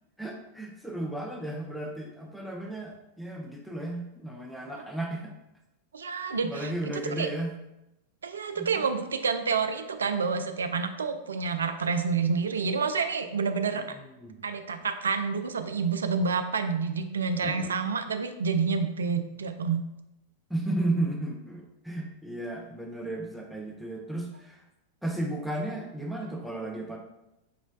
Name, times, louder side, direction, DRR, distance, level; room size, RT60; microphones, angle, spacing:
voice 1, 0.2-5.3 6.0-7.5 8.6-8.8 13.8-14.4 17.4-17.7 20.5-24.6 25.0-27.0, right 1 dB, ahead, 1 dB, 0.4 m, -34 dB
voice 2, 5.9-6.7 7.2-7.3 8.2-13.8 14.4-19.8, right 5 dB, 70° right, 8 dB, 0.3 m, -28 dB
5.2 x 3.0 x 2.5 m, 0.89 s
figure-of-eight pair, 90°, 0 cm